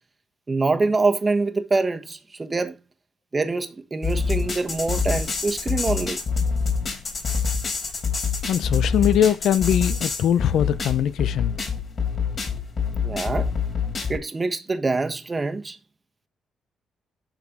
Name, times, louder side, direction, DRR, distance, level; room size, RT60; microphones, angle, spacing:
voice 1, 0.5-2.8 3.3-6.2 13.0-13.5 14.1-15.8, right 3 dB, 25° right, 1.3 m, -25 dB
sound 1, 4.0-14.2, left 5 dB, 50° left, 4.1 m, -26 dB
voice 2, 8.5-11.5, left 10 dB, 75° left, 0.6 m, -21 dB
11.5 x 4.2 x 4.1 m
cardioid pair, 90°, 0 cm